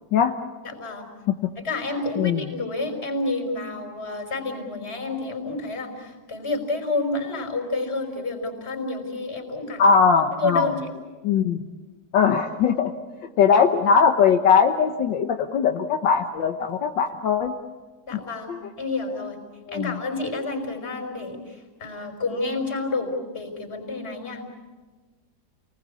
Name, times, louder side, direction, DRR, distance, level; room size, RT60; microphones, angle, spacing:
voice 1, 0.6-1.1 1.6-9.8 10.4-10.8 18.1-18.5 18.8-19.4 19.7-24.4, left 2 dB, 35° left, 3 dB, 5.4 m, -29 dB
voice 2, 9.8-10.7 11.2-11.6 12.1-12.9 13.4-17.5 18.5-18.6 19.7-19.9, left 6 dB, 80° left, 5 dB, 1.8 m, -20 dB
29.0 x 20.0 x 8.4 m, 1.3 s
omnidirectional pair, 2.0 m